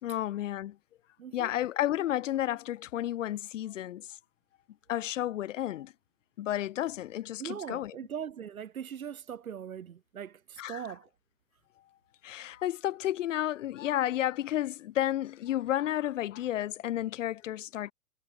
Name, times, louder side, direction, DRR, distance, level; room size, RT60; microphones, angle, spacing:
voice 1, 0.0-0.7 1.3-4.1 4.9-5.9 6.4-7.9 10.6-10.8 12.2-17.9, left 13 dB, 60° left, 2.0 m, -32 dB
voice 2, 1.2-1.5 7.4-11.1, right 8 dB, 70° right, 1.8 m, -40 dB
figure-of-eight pair, 100°, 43 cm